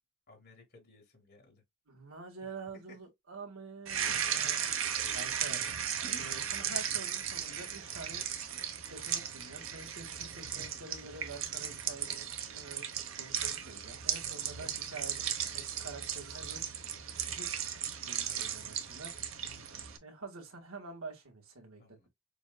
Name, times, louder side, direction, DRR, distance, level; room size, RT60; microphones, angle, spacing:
voice 1, 0.3-1.6 2.7-3.0 15.4-15.7 21.8-22.1, left 3 dB, 50° left, 3.2 m, -59 dB
voice 2, 1.9-4.8 5.1-5.6 6.2-8.2 8.9-12.9 13.2-16.6 17.2-17.7 18.0-19.1 20.0-22.1, right 3 dB, 90° right, 2.1 m, -47 dB
sound 1, 3.9-20.0, right 8 dB, 70° right, 1.0 m, -36 dB
6.9 x 2.7 x 2.3 m
head